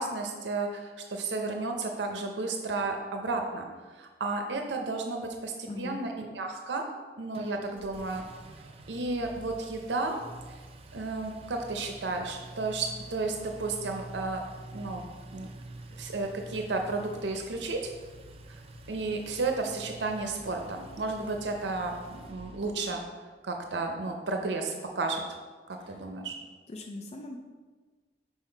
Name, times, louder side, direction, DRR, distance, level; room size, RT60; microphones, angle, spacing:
voice 1, 0.0-3.7 3.9-6.9 7.2-8.2 8.9-10.2 10.9-14.4 14.7-15.0 15.3-15.5 15.9-17.9 18.5-18.6 18.9-23.0 23.4-25.2 25.7-26.4, right 3 dB, 80° right, 3 dB, 0.6 m, -33 dB
voice 2, 5.7-6.0 25.9-26.0 26.7-27.4, left 2 dB, 40° left, 3 dB, 0.4 m, -40 dB
Engine, 7.3-23.0, right 1 dB, 35° right, 0.5 m, -48 dB
5.6 x 4.5 x 4.4 m, 1.4 s
head